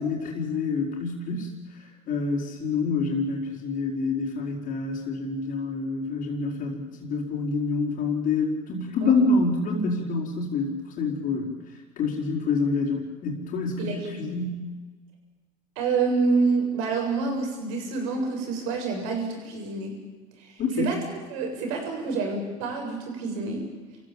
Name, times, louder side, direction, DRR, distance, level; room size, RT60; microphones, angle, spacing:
voice 1, 0.0-11.6 12.0-14.6 20.6-20.9, left 3 dB, 55° left, -3 dB, 5.2 m, -27 dB
voice 2, 13.8-14.4 15.8-19.9 20.4-21.0 21.3-23.6, right 4 dB, 80° right, 2 dB, 7.7 m, -27 dB
28.0 x 15.5 x 9.0 m, 1.3 s
supercardioid pair, 95°, 17 cm